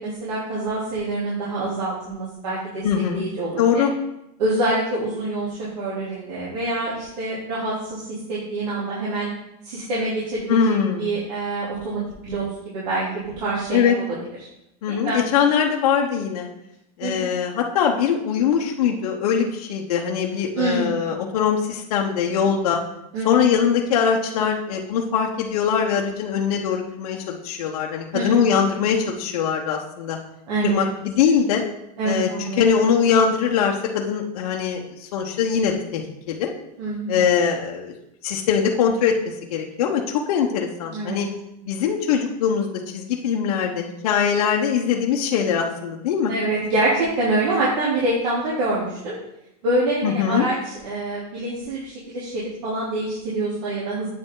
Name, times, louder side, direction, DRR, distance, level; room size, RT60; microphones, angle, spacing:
voice 1, 0.0-2.9 3.1-3.8 4.4-9.3 9.6-10.6 11.0-13.9 14.9-15.2 17.0-17.3 20.5-21.2 23.1-23.5 28.1-28.6 30.5-30.9 32.0-32.6 36.8-37.2 40.9-41.2 46.3-49.2 49.6-54.1, right 2 dB, 85° right, -8 dB, 3.2 m, -26 dB
voice 2, 2.8-3.3 3.6-3.9 10.5-11.1 13.7-14.0 14.8-16.5 17.0-22.8 23.2-30.2 30.6-31.6 32.0-36.5 37.1-37.9 38.2-39.2 39.5-40.0 40.3-41.3 41.7-46.3 50.0-50.5, left 7 dB, 65° left, 0 dB, 1.1 m, -22 dB
8.6 x 6.7 x 3.9 m, 0.84 s
supercardioid pair, 175°, 20 cm